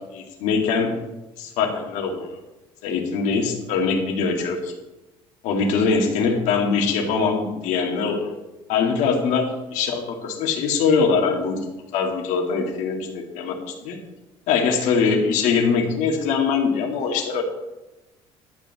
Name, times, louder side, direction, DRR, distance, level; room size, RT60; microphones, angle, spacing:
voice 1, 0.1-1.0 1.4-2.4 2.8-4.7 5.4-8.3 8.7-11.6 11.9-14.0 14.5-17.4, left 5 dB, 75° left, 2 dB, 2.2 m, -22 dB
12.0 x 5.4 x 7.1 m, 1.0 s
supercardioid pair, 85°, 12 cm